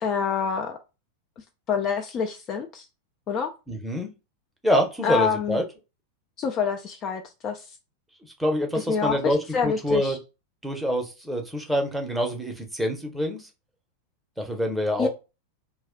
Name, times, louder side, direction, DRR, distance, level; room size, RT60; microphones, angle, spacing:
voice 1, 0.0-0.8 1.7-2.9 3.3-3.5 5.0-5.6 6.4-7.7 8.7-10.2 15.0-15.1, left 6 dB, 30° left, 5 dB, 0.3 m, -27 dB
voice 2, 3.7-4.1 4.6-5.6 8.4-10.2 10.6-13.4 14.4-15.1, equal, 5° right, 2 dB, 0.7 m, -26 dB
2.3 x 2.1 x 3.6 m, 0.28 s
figure-of-eight pair, 90°, 0 cm